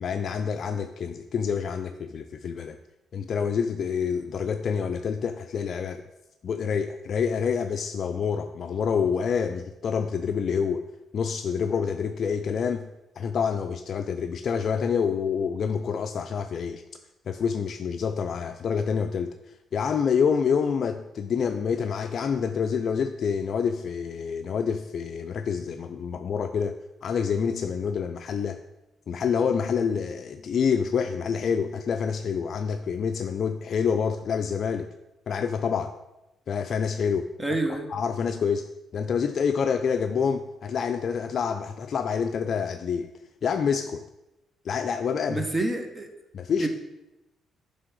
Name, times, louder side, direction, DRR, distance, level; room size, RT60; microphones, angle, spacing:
voice 1, 0.0-2.8 3.1-6.0 6.4-10.8 11.1-12.9 13.2-16.8 17.3-28.6 29.1-34.9 35.3-35.9 36.5-37.3 37.7-38.7 38.9-43.1 43.4-44.0 44.6-45.5 46.3-46.7, left 6 dB, 55° left, 7 dB, 0.3 m, -27 dB
voice 2, 37.4-37.9 45.3-46.1 46.6-46.7, right 2 dB, 20° right, 5 dB, 1.0 m, -27 dB
7.6 x 3.4 x 6.1 m, 0.95 s
cardioid pair, 90°, 0 cm